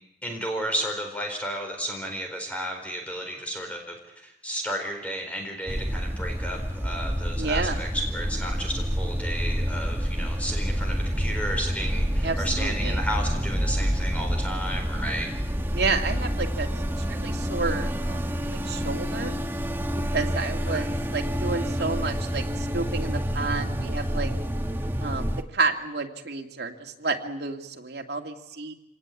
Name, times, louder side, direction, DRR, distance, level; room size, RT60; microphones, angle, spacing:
voice 1, 0.2-15.3 20.7-20.9, equal, 10° left, 3 dB, 4.3 m, -33 dB
sound 1, 5.7-25.4, equal, 15° right, 1.1 m, -28 dB
voice 2, 7.4-7.8 12.2-13.0 15.7-16.7 17.0-19.4 20.1-24.3 25.0-28.7, right 4 dB, 70° right, 3 dB, 2.3 m, -30 dB
26.0 x 19.0 x 8.5 m, 0.91 s
head